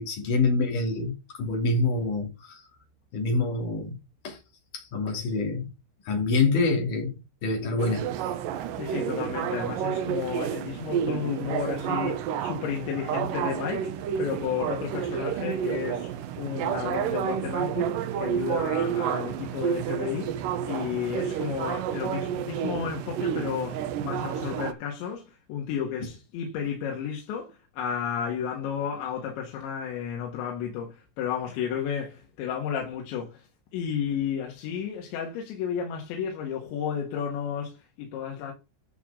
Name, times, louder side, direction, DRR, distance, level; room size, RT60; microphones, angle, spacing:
voice 1, 0.0-2.7 3.1-4.0 4.2-4.4 4.7-5.7 6.1-8.1, left 3 dB, 50° left, 4.1 m, -26 dB
sound 1, 7.8-24.7, right 9 dB, 80° right, 1.9 m, -30 dB
voice 2, 8.8-20.3 20.7-33.5 33.7-38.5, left 8 dB, 85° left, 4.0 m, -32 dB
11.5 x 6.5 x 3.8 m
omnidirectional pair, 5.1 m